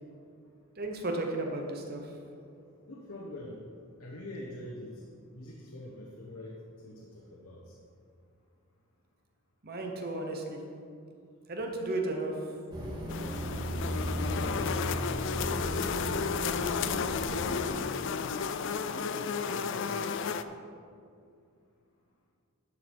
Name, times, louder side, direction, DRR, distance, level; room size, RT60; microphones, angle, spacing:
voice 1, 0.8-2.0 9.6-10.6 11.5-12.4, right 2 dB, 45° right, 2 dB, 1.0 m, -34 dB
voice 2, 2.9-3.6 4.0-5.0 5.3-6.6 6.8-7.8 14.3-14.8 15.5-16.8 17.3-18.0 18.3-20.2, left 1 dB, 80° left, -2 dB, 1.1 m, -44 dB
sound 1, 12.7-17.7, equal, 20° right, 2.1 m, -35 dB
sound 2, 13.1-20.4, left 6 dB, 60° left, 0.4 m, -33 dB
12.0 x 4.7 x 5.4 m, 2.4 s
head